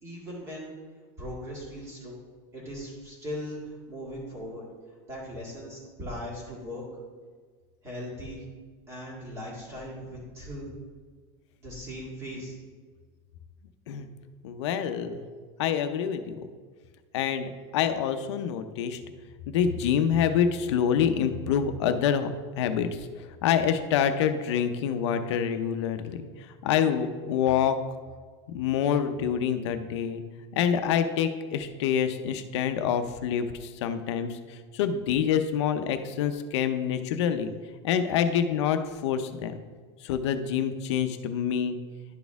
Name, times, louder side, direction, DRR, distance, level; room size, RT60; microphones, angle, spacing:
voice 1, 0.0-0.7 1.2-2.2 2.5-4.6 5.1-6.8 7.8-8.5 8.9-10.7 11.6-12.6, equal, 20° right, -4 dB, 1.9 m, -39 dB
voice 2, 14.4-15.2 15.6-16.5 17.1-19.0 19.5-22.3 22.6-27.8 28.5-30.2 30.5-37.5 37.8-39.6 40.0-41.8, left 8 dB, 85° left, 9 dB, 0.6 m, -26 dB
11.0 x 4.2 x 3.5 m, 1.5 s
supercardioid pair, 175°, 14 cm